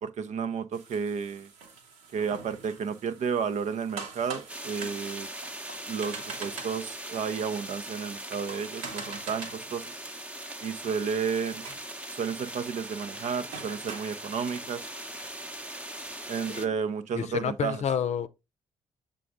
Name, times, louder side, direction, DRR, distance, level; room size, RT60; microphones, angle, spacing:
voice 1, 0.0-1.5 2.1-5.3 5.9-10.0 10.6-11.6 12.1-14.9 16.3-17.8, right 6 dB, 55° right, 0.7 m, -32 dB
sound 1, 0.7-16.2, right 4 dB, 75° right, 1.3 m, -46 dB
sound 2, 4.5-16.7, right 1 dB, 10° right, 0.9 m, -40 dB
voice 2, 17.1-18.3, left 8 dB, 50° left, 0.6 m, -29 dB
7.6 x 3.8 x 3.7 m
hypercardioid pair, 45°, 15 cm